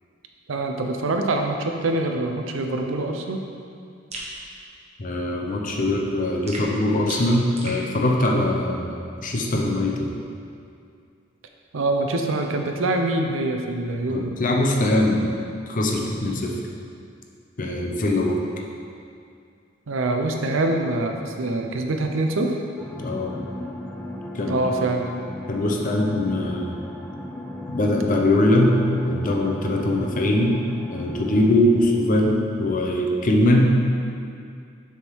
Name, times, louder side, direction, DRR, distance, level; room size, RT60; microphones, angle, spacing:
voice 1, 0.5-3.4 11.7-14.3 19.9-22.6 24.5-25.1, right 2 dB, 75° right, 3 dB, 0.6 m, -24 dB
sound 1, 4.1-4.3 6.5-7.8, right 2 dB, 35° right, 0.9 m, -35 dB
voice 2, 5.0-10.1 14.1-15.4 15.7-16.6 17.6-18.4 23.0-23.4 24.3-24.7 25.5-26.7 27.7-33.8, left 1 dB, 45° left, 0 dB, 0.7 m, -22 dB
sound 2, 22.8-31.5, left 1 dB, 5° left, 0.4 m, -36 dB
6.9 x 3.6 x 4.6 m, 2.4 s
head